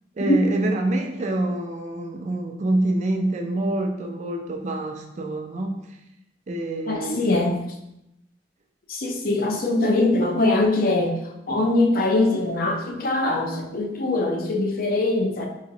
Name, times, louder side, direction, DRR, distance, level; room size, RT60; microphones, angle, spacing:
voice 1, 0.2-5.7 6.5-7.3, right 1 dB, 40° right, 3 dB, 0.4 m, -26 dB
voice 2, 6.9-7.6 8.9-11.2 11.5-15.5, left 2 dB, 50° left, 3 dB, 0.5 m, -22 dB
3.9 x 3.0 x 2.7 m, 0.86 s
head